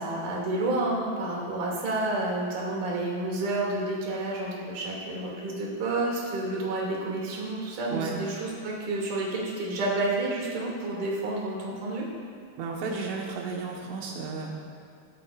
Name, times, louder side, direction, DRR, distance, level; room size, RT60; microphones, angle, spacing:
voice 1, 0.0-12.0, right 2 dB, 45° right, -4 dB, 3.8 m, -30 dB
voice 2, 12.6-14.5, right 4 dB, 90° right, -2 dB, 4.0 m, -33 dB
22.0 x 13.0 x 2.6 m, 2.6 s
omnidirectional pair, 5.5 m